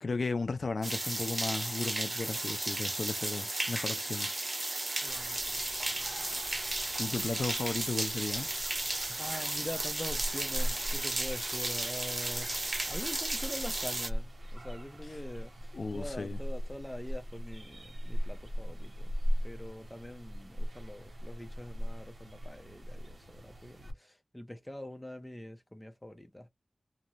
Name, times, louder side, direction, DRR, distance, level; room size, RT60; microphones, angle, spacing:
voice 1, 0.0-4.3 7.0-8.5 15.7-16.4, left 3 dB, 80° left, 0.4 m, -35 dB
sound 1, 0.8-14.1, right 2 dB, 45° right, 0.5 m, -34 dB
voice 2, 5.0-6.4 9.1-19.2 19.4-26.5, left 1 dB, 15° left, 0.6 m, -44 dB
sound 2, 5.1-23.9, equal, 75° right, 1.0 m, -39 dB
2.5 x 2.1 x 3.0 m
wide cardioid pair, 55°, 0 cm